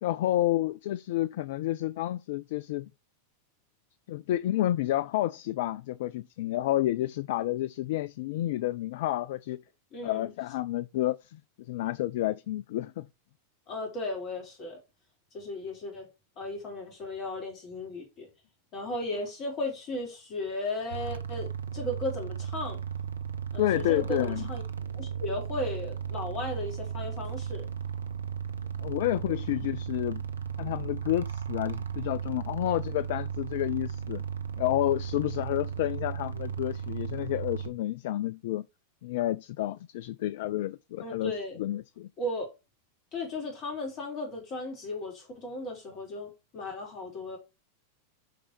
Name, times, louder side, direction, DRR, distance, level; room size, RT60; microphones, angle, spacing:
voice 1, 0.0-2.9 4.1-9.6 10.0-13.1 23.6-24.5 28.8-30.2 30.6-34.2 34.6-38.6 39.0-42.1, left 14 dB, 55° left, 0.3 m, -30 dB
voice 2, 9.9-10.3 13.7-14.8 15.3-16.1 16.4-18.3 18.7-22.8 23.5-24.6 24.9-27.7 41.0-41.6 42.2-42.5 43.1-47.4, left 2 dB, 35° left, 3.7 m, -35 dB
sound 1, 20.9-37.7, right 7 dB, 70° right, 0.7 m, -35 dB
6.5 x 5.3 x 4.4 m
figure-of-eight pair, 90°, 0 cm